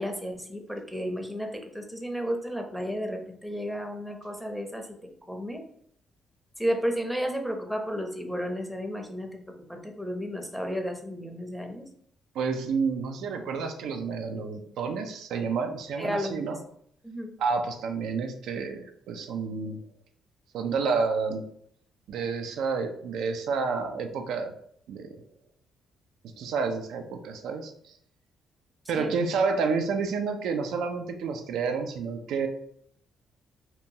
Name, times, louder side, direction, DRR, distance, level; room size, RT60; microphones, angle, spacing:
voice 1, 0.0-4.9 5.3-5.6 6.6-9.4 9.7-11.8 16.0-16.5 17.0-17.3 29.0-29.2 29.5-29.6, equal, 5° right, 3 dB, 0.5 m, -32 dB
voice 2, 12.4-16.6 17.4-19.8 20.5-21.4 22.1-24.5 24.9-25.2 26.4-27.9 28.9-32.5, right 5 dB, 80° right, 6 dB, 0.3 m, -29 dB
2.8 x 2.2 x 2.6 m, 0.66 s
cardioid pair, 90°, 0 cm